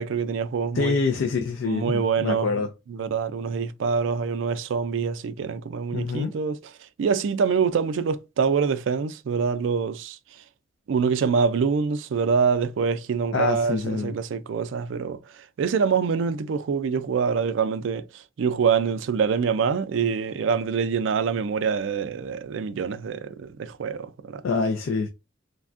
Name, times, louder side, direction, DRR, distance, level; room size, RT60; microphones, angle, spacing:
voice 1, 0.0-1.0 1.6-2.5 2.9-6.7 7.0-10.2 10.9-24.4, right 6 dB, 75° right, 0.3 m, -25 dB
voice 2, 0.7-2.7 5.9-6.3 13.3-14.1 24.4-25.1, left 4 dB, 75° left, 0.4 m, -26 dB
3.3 x 2.2 x 2.4 m
head